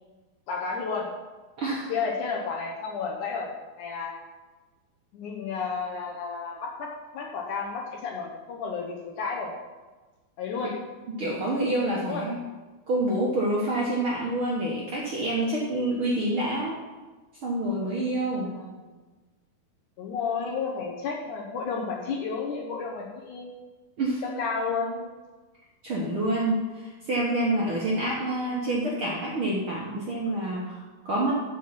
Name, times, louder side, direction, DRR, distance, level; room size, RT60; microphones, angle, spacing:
voice 1, 0.5-1.1 1.9-3.5 3.8-4.1 5.1-9.5 10.4-10.7 12.0-12.2 18.6-18.7 20.0-23.5 24.4-25.1, left 5 dB, 70° left, -1 dB, 2.1 m, -32 dB
voice 2, 1.6-1.9 10.6-10.7 11.2-12.4 12.9-16.8 17.4-18.5 24.0-24.2 25.8-31.3, right 1 dB, 55° right, -5 dB, 1.5 m, -27 dB
7.7 x 7.6 x 5.7 m, 1.2 s
omnidirectional pair, 4.4 m